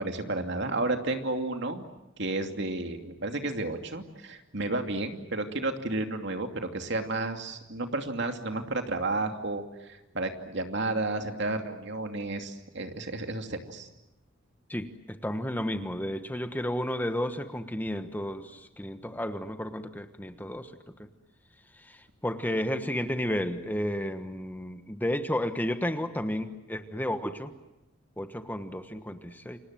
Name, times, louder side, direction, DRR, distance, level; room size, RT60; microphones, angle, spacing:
voice 1, 0.0-1.9 2.2-13.9, right 2 dB, 60° right, 5 dB, 2.7 m, -32 dB
voice 2, 14.7-21.1 21.7-27.5 28.2-29.6, equal, 10° left, 8 dB, 1.3 m, -32 dB
29.5 x 26.0 x 7.6 m, 0.97 s
head